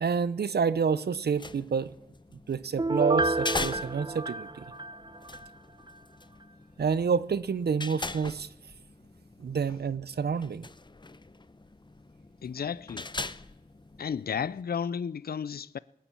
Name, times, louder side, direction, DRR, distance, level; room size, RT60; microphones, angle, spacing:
voice 1, 0.0-1.9 2.5-4.5 6.8-8.5 9.4-10.7, right 6 dB, 85° right, 0.6 m, -28 dB
sound 1, 1.1-14.6, left 3 dB, 30° left, 0.6 m, -41 dB
Piano, 2.8-5.5 5.9-6.0, right 2 dB, 30° right, 0.7 m, -29 dB
voice 2, 12.4-13.1 14.0-15.8, left 7 dB, 70° left, 0.4 m, -33 dB
19.0 x 7.1 x 8.4 m
wide cardioid pair, 55°, 16 cm